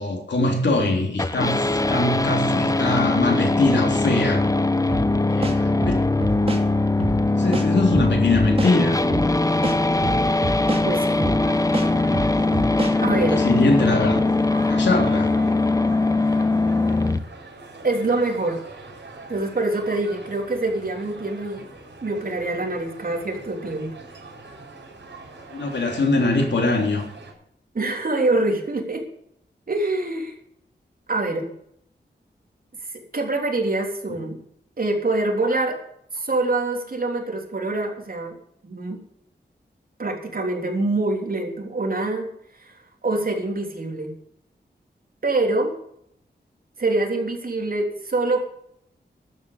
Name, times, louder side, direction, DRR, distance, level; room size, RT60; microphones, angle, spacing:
voice 1, 0.0-4.4 5.3-5.9 7.3-9.0 13.1-14.2 14.7-15.3 25.5-27.0, left 2 dB, 80° left, 1 dB, 3.6 m, -22 dB
sound 1, 1.2-17.2, left 2 dB, 20° left, 0.9 m, -21 dB
sound 2, 4.9-5.1 5.4-6.6 7.0-7.2 7.5-8.7 9.1-9.3 9.6-10.8 11.2-11.4 11.7-12.9, right 2 dB, 35° right, 2.5 m, -27 dB
voice 2, 10.8-11.3 13.0-13.5 17.8-18.6 19.3-21.7 22.0-23.9 27.7-29.1 29.7-30.3 31.1-31.5 33.1-34.4 34.8-35.8 36.1-38.4 38.6-39.0 40.0-42.3 42.6-44.2 45.2-45.8 46.8-48.4, right 2 dB, 55° right, 2 dB, 3.5 m, -25 dB
sound 3, 11.4-27.3, right 3 dB, 85° right, 4.7 m, -42 dB
12.5 x 8.3 x 8.2 m, 0.71 s
wide cardioid pair, 85°, 18 cm